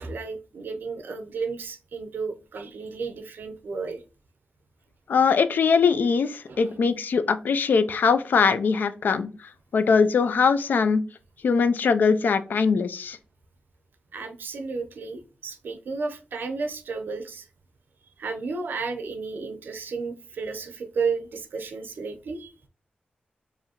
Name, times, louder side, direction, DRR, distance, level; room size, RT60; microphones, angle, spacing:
voice 1, 0.0-4.0 6.5-6.8 14.1-17.5 18.2-22.5, right 4 dB, 80° right, 6 dB, 0.6 m, -33 dB
voice 2, 5.1-11.0 11.4-13.2, left 5 dB, 70° left, 12 dB, 0.4 m, -22 dB
4.8 x 2.7 x 2.9 m, 0.35 s
wide cardioid pair, 180°, 3 cm